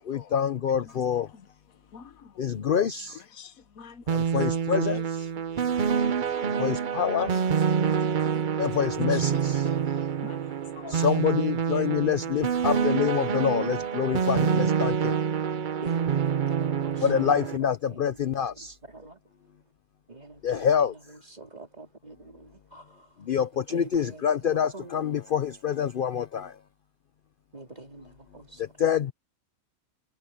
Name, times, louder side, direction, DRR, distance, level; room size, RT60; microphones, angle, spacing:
voice 1, 0.1-1.3 2.4-3.2 4.1-5.3 6.4-7.3 8.6-9.7 10.9-15.2 17.0-18.7 20.4-20.9 23.2-26.5 28.6-29.1, left 8 dB, 50° left, 0.7 m, -26 dB
voice 2, 1.9-2.6 2.9-4.0 4.5-4.6 6.4-6.7 7.3-7.4 7.7-9.9 10.2-11.1, left 7 dB, 85° left, 1.4 m, -47 dB
sound 1, 4.1-17.6, right 7 dB, 45° right, 0.7 m, -27 dB
voice 3, 15.8-19.2 20.1-23.2 23.7-25.0 27.5-28.6, right 2 dB, 30° right, 3.0 m, -46 dB
omnidirectional pair, 1.4 m